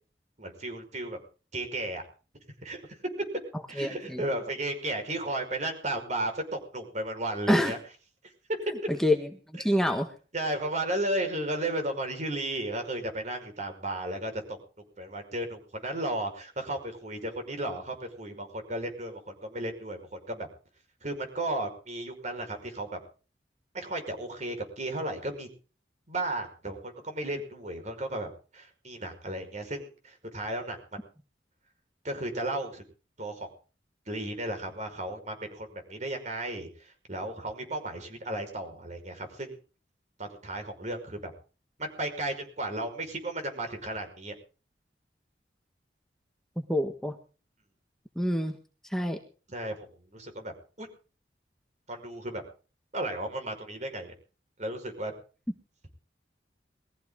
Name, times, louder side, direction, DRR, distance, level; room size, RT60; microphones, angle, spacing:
voice 1, 0.4-1.2 1.5-2.0 2.6-3.0 3.7-7.8 8.6-8.7 10.3-14.6 15.0-20.5 21.0-23.0 23.7-25.5 26.1-31.0 32.0-32.8 33.2-33.5 34.1-39.6 40.2-41.3 41.8-44.3 49.5-50.9 51.9-52.4 52.9-54.1 54.6-55.1, right 1 dB, 40° right, 5 dB, 5.4 m, -34 dB
voice 2, 3.8-4.2 7.5-7.7 8.9-9.2 9.6-10.1 46.6-47.2 48.1-48.6 48.9-49.2, left 1 dB, 5° left, 4 dB, 1.5 m, -26 dB
21.0 x 15.5 x 3.9 m, 0.37 s
head